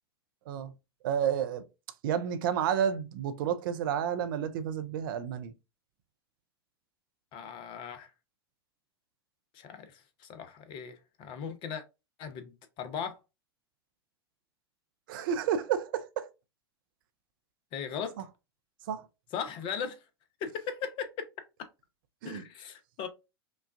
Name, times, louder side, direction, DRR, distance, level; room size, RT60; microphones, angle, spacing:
voice 1, 1.0-1.6 2.0-5.5 15.1-16.3 18.9-19.1 22.2-22.4, right 8 dB, 55° right, 0.6 m, -30 dB
voice 2, 7.3-8.1 9.5-11.8 12.2-13.2 17.7-18.2 19.3-20.0 20.4-21.3 22.2-23.1, left 7 dB, 40° left, 0.8 m, -38 dB
5.2 x 2.3 x 2.5 m
figure-of-eight pair, 85°, 13 cm